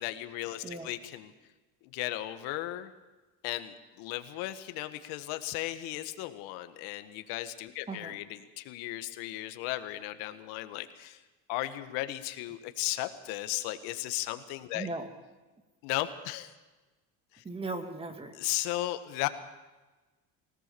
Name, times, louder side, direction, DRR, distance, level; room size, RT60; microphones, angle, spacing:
voice 1, 0.0-1.3 1.9-2.9 3.4-11.2 11.5-14.9 15.8-16.5 17.3-17.4 18.3-19.3, left 16 dB, 80° left, 10 dB, 1.7 m, -35 dB
voice 2, 7.9-8.2 14.7-15.1 17.4-18.3, right 3 dB, 15° right, 7 dB, 2.3 m, -37 dB
24.0 x 18.0 x 7.0 m, 1.2 s
cardioid pair, 140°, 36 cm